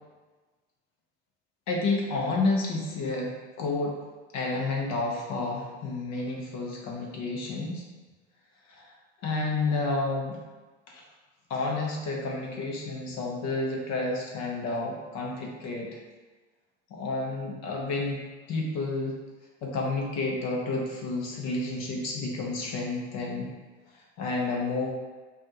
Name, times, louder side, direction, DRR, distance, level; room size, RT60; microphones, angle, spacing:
voice 1, 1.7-4.0 4.3-7.8 8.7-8.9 9.2-10.4 10.9-11.0 11.5-16.0 16.9-18.2 18.5-19.2 19.6-23.5 23.9-24.9, left 3 dB, 55° left, -1 dB, 1.0 m, -30 dB
5.2 x 2.6 x 3.0 m, 1.3 s
supercardioid pair, 105°, 33 cm